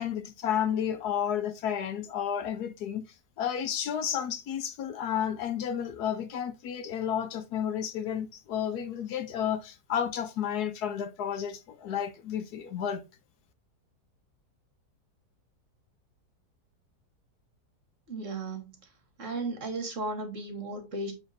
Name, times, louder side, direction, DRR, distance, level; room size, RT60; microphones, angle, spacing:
voice 1, 0.0-3.1 3.4-13.0, left 9 dB, 70° left, 1.2 m, -31 dB
voice 2, 18.1-18.7 19.2-21.1, right 2 dB, 50° right, 1.8 m, -35 dB
7.2 x 3.4 x 4.0 m
omnidirectional pair, 1.8 m